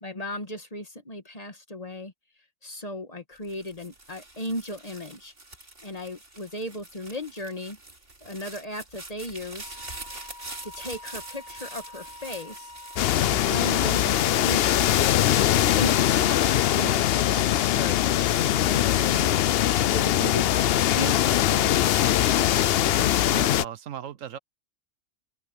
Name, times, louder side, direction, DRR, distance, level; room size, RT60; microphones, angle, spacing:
voice 1, 0.0-2.1 2.6-5.3 5.8-7.8 8.2-9.8 10.6-12.7 13.3-20.6 20.9-23.2, left 1 dB, 30° left, 1.6 m, -37 dB
sound 1, 3.4-14.7 15.2-15.8, right 2 dB, 45° right, 3.9 m, -44 dB
Wind instrument woodwind instrument, 9.6-14.1, left 2 dB, 90° left, 2.3 m, -46 dB
sound 2, 13.0-23.6, left 12 dB, 60° left, 0.7 m, -22 dB
voice 2, 23.3-24.4, right 9 dB, 80° right, 1.3 m, -37 dB
open air
omnidirectional pair, 1.3 m